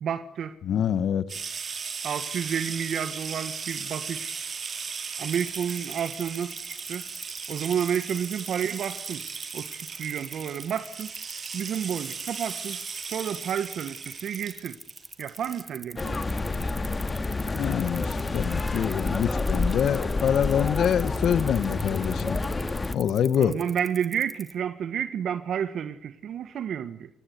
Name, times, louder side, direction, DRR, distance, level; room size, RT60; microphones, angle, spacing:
voice 1, 0.0-0.5 2.0-4.4 5.2-7.1 7.5-9.2 9.5-11.1 11.5-12.8 13.1-14.8 15.2-16.2 23.4-27.1, right 8 dB, 65° right, 1.5 m, -30 dB
voice 2, 0.6-1.2 17.5-22.4 22.9-23.6, left 9 dB, 65° left, 1.3 m, -25 dB
sound 1, 1.3-15.6, right 5 dB, 50° right, 7.7 m, -37 dB
sound 2, 5.3-24.5, right 1 dB, 5° right, 2.7 m, -43 dB
sound 3, 16.0-22.9, left 3 dB, 25° left, 2.1 m, -28 dB
30.0 x 16.0 x 9.9 m
cardioid pair, 90°, 0 cm